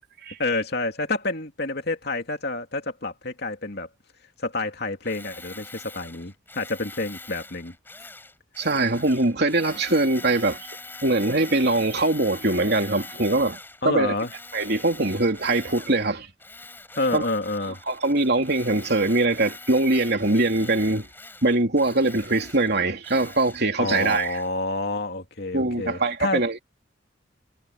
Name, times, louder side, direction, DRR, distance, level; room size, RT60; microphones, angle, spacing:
voice 1, 0.4-3.9 4.4-7.7 13.8-14.3 17.0-17.8 23.8-26.4, left 2 dB, 55° left, 2.7 m, -28 dB
Tools, 5.0-13.8 14.2-16.1 16.4-24.5, left 3 dB, 10° left, 7.5 m, -43 dB
voice 2, 8.6-10.7 11.0-13.6 13.8-14.1 14.5-16.3 17.1-17.2 17.6-21.1 21.4-24.4 25.5-26.6, right 2 dB, 55° right, 3.3 m, -22 dB
head